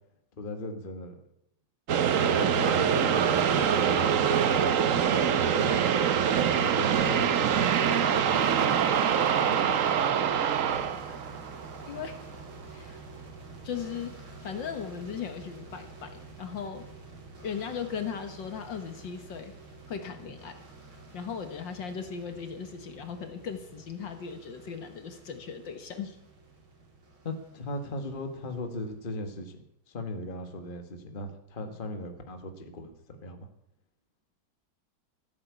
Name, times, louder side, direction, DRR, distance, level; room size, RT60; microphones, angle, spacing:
voice 1, 0.4-1.2 2.3-4.5 5.5-5.9 6.5-10.3 27.2-29.6 29.9-33.5, left 1 dB, 25° left, 5 dB, 1.7 m, -38 dB
sound 1, 1.9-12.1, right 8 dB, 55° right, 0.9 m, -24 dB
sound 2, 10.5-29.1, right 3 dB, 85° right, 3.7 m, -49 dB
voice 2, 11.9-12.2 12.7-13.0 13.6-16.9 17.4-19.5 19.9-20.6 21.1-26.2, left 7 dB, 65° left, 7 dB, 2.1 m, -38 dB
15.5 x 9.0 x 8.3 m, 0.77 s
omnidirectional pair, 2.2 m